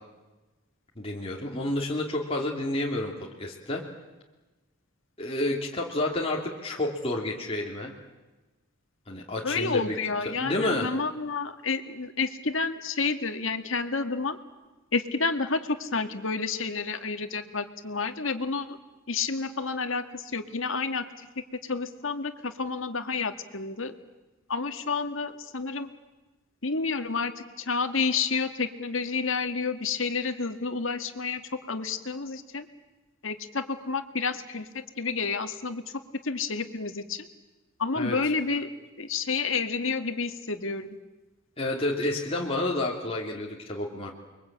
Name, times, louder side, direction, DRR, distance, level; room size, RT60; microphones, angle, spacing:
voice 1, 1.0-3.1 3.4-3.8 5.2-7.9 9.1-9.9 10.3-10.9 37.9-38.2 41.6-44.1, left 1 dB, 30° left, -2 dB, 2.9 m, -30 dB
voice 2, 9.4-14.4 14.9-18.7 19.1-21.3 21.6-23.9 24.5-25.9 26.6-32.7 33.2-37.3 37.8-38.7 39.0-40.9, left 4 dB, 70° left, 7 dB, 1.9 m, -30 dB
30.0 x 22.5 x 8.8 m, 1.1 s
head